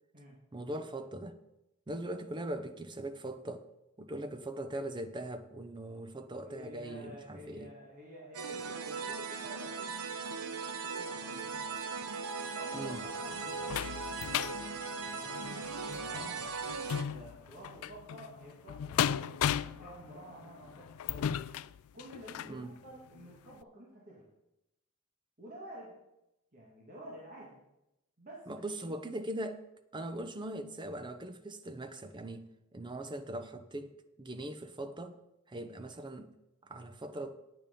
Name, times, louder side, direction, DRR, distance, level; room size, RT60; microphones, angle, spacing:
voice 1, 0.5-1.4 1.9-3.7 4.0-7.7 12.7-13.0 22.4-22.7 28.5-29.6 29.9-33.9 34.2-35.2 35.5-36.3 36.6-37.4, right 1 dB, 20° right, 10 dB, 0.6 m, -40 dB
voice 2, 6.4-11.8 12.5-14.1 15.1-15.4 15.9-16.5 17.1-19.4 19.7-21.4 21.9-24.3 25.4-26.0 26.5-27.6 28.2-29.0, right 1 dB, 40° right, -5 dB, 1.9 m, -50 dB
sound 1, 8.3-17.0, right 4 dB, 90° right, 1.0 m, -38 dB
sound 2, 12.7-22.6 23.1-23.3 23.6-23.7, left 9 dB, 75° left, 0.3 m, -36 dB
9.0 x 8.9 x 5.2 m, 0.90 s
head